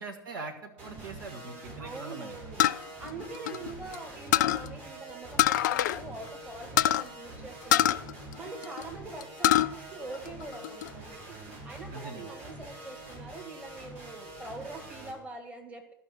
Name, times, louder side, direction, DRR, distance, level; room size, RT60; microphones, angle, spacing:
voice 1, 0.0-2.3 3.6-3.7 11.9-12.3, right 3 dB, 65° right, 3 dB, 1.6 m, -42 dB
sound 1, 0.8-15.1, right 2 dB, 50° right, 5.3 m, -45 dB
voice 2, 1.8-2.7 3.0-8.0 8.4-11.4 11.6-15.9, right 3 dB, 10° right, 2 dB, 1.8 m, -43 dB
sound 2, 2.6-4.0 4.3-4.7 5.4-6.0 6.3-6.4 6.8-7.0 7.7-8.8 9.2-9.7 10.1-10.9, left 12 dB, 55° left, 0.4 m, -24 dB
14.0 x 5.8 x 5.9 m, 0.77 s
figure-of-eight pair, 90°, 12 cm